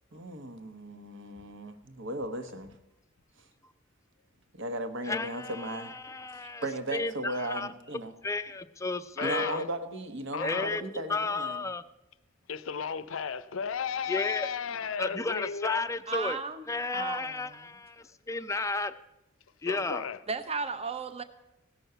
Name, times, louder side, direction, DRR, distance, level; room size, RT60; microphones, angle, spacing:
voice 1, 0.1-2.7 4.5-5.9 6.3-8.1 9.2-11.6, right 1 dB, 65° right, 1.1 m, -36 dB
voice 2, 5.1-7.7 8.2-9.6 10.4-10.8 11.1-11.8 14.1-14.5 15.0-16.4 16.7-18.9 19.6-20.0, left 3 dB, 15° left, 0.4 m, -33 dB
voice 3, 9.2-9.6 10.3-10.7 12.5-15.8 19.6-20.2, left 6 dB, 70° left, 0.6 m, -34 dB
voice 4, 16.1-17.6 20.3-21.2, right 4 dB, 30° right, 0.8 m, -35 dB
16.5 x 6.2 x 6.7 m
head